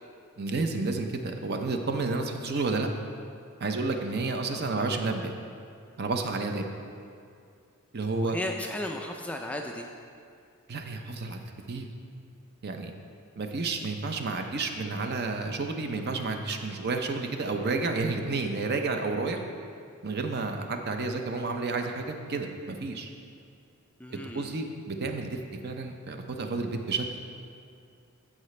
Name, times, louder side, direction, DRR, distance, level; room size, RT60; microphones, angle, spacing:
voice 1, 0.4-2.9 3.6-5.3 6.0-6.6 7.9-8.4 10.7-11.4 11.7-11.9 12.6-12.9 13.4-19.4 20.0-23.1 24.1-27.1, right 3 dB, 45° right, 5 dB, 0.6 m, -31 dB
voice 2, 4.5-5.1 8.2-9.9 24.0-24.5, left 1 dB, 5° left, 2 dB, 0.3 m, -36 dB
14.5 x 4.9 x 3.2 m, 2.4 s
head